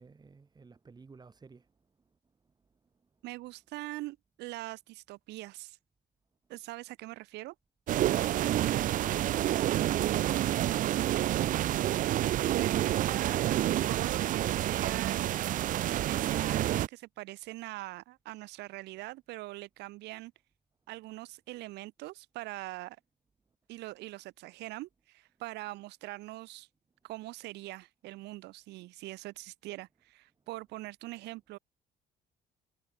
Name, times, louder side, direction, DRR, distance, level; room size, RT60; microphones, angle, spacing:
voice 1, 0.0-1.7, right 4 dB, 25° right, 3.2 m, -51 dB
voice 2, 3.2-5.8 6.5-7.5 12.5-13.5 13.9-15.4 16.1-20.3 20.9-23.0 23.7-26.7 27.0-31.6, right 19 dB, 85° right, 4.2 m, -43 dB
sound 1, 7.9-16.9, right 13 dB, 55° right, 0.4 m, -28 dB
cardioid pair, 110°, 17 cm